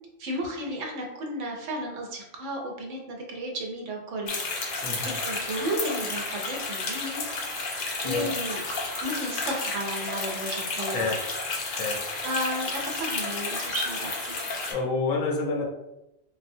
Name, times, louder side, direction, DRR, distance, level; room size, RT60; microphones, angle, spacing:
voice 1, 0.2-4.3 5.1-7.3 8.0-8.6 9.0-11.1 12.2-14.4, right 1 dB, 70° right, 0 dB, 1.0 m, -33 dB
sound 1, 4.3-14.7, left 3 dB, 55° left, 0.6 m, -32 dB
voice 2, 4.8-5.2 8.0-8.3 10.8-11.2 11.6-12.1 14.7-15.7, left 3 dB, 80° left, 1 dB, 1.0 m, -29 dB
3.6 x 2.1 x 2.6 m, 0.91 s
omnidirectional pair, 1.4 m